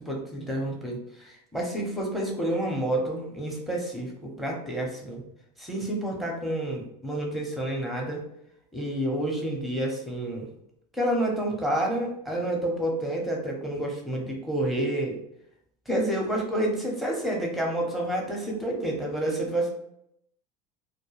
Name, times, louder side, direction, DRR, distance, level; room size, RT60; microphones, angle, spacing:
voice 1, 0.0-5.2 5.6-8.2 8.7-10.5 10.9-15.1 15.9-19.7, right 1 dB, ahead, -1 dB, 0.7 m, -29 dB
2.2 x 2.1 x 3.1 m, 0.75 s
hypercardioid pair, 95°, 21 cm